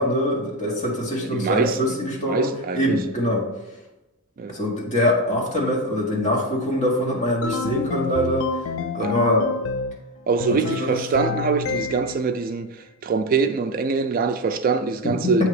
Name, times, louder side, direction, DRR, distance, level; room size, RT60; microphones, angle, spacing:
voice 1, 0.0-3.5 4.5-8.5 8.9-9.4 10.5-11.0 15.0-15.5, left 1 dB, 35° left, 1.6 m, -23 dB
voice 2, 1.3-2.0 2.3-3.0 4.4-4.6 9.0-9.2 10.3-15.5, right 5 dB, 40° right, 0.3 m, -24 dB
sound 1, 7.4-10.0 10.4-12.3, left 5 dB, 70° left, 0.4 m, -29 dB
8.2 x 2.9 x 4.8 m
head